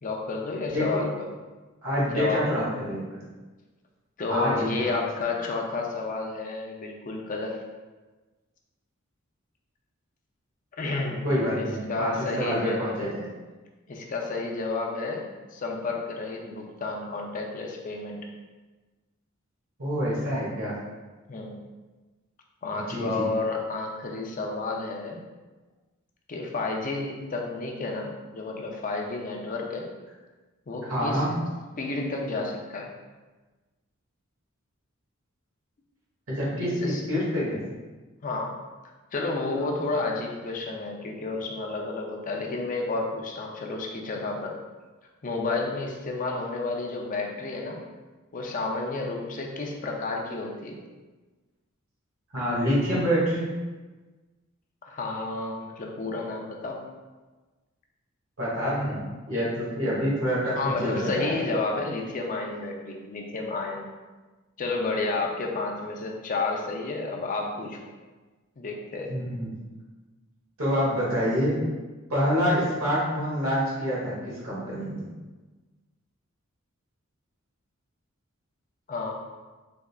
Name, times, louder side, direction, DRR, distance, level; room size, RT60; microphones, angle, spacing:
voice 1, 0.0-1.3 2.1-2.7 4.2-7.6 10.8-11.3 11.5-12.8 13.9-18.2 21.3-21.5 22.6-25.2 26.3-29.9 30.7-31.3 31.8-32.9 36.6-37.0 38.2-38.6 39.1-44.6 45.2-47.8 48.3-50.8 54.8-56.8 60.6-63.9 64.6-67.8 68.6-69.2 78.9-79.1, left 3 dB, 40° left, 1 dB, 0.5 m, -31 dB
voice 2, 1.8-3.2 4.3-5.0 11.2-13.3 19.8-20.8 22.9-23.2 30.9-31.3 36.3-36.8 37.1-37.6 39.6-39.7 52.3-53.5 58.4-61.4 69.1-69.5 70.6-71.6 72.1-75.0, equal, 70° right, -7 dB, 1.2 m, -27 dB
3.6 x 3.2 x 2.3 m, 1.3 s
head